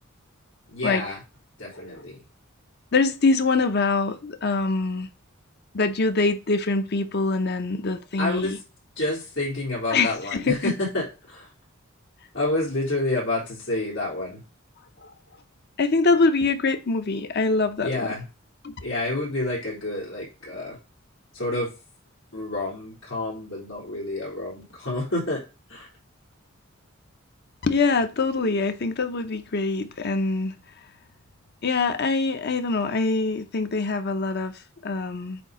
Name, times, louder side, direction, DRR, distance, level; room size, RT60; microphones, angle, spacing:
voice 1, 0.7-1.2 1.6-2.2 8.2-8.6 9.0-11.5 12.3-14.4 17.8-18.2 18.8-20.8 21.3-21.7 22.3-25.4 25.7-25.9, left 2 dB, 90° left, 3.2 m, -29 dB
voice 2, 2.9-5.1 5.7-8.6 9.9-10.7 15.0-15.1 15.8-17.9 18.6-18.7 27.6-30.5 31.6-34.5 34.8-35.4, left 3 dB, 50° left, 0.7 m, -24 dB
8.1 x 2.8 x 5.1 m
head